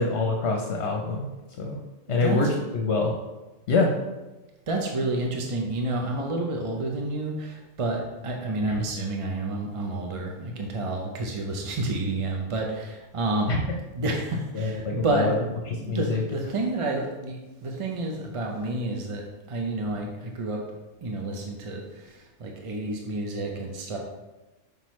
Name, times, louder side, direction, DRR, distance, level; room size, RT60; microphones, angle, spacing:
voice 1, 0.0-1.8 2.1-2.5 2.7-3.1 3.7-3.9 13.5-13.6 14.5-15.4 15.9-16.2, left 3 dB, 65° left, 1 dB, 0.9 m, -25 dB
voice 2, 2.1-2.5 4.7-13.6 13.9-15.3 15.7-20.7 21.0-24.0, right 2 dB, 40° right, 1 dB, 0.5 m, -29 dB
6.0 x 5.2 x 3.1 m, 1.1 s
omnidirectional pair, 1.3 m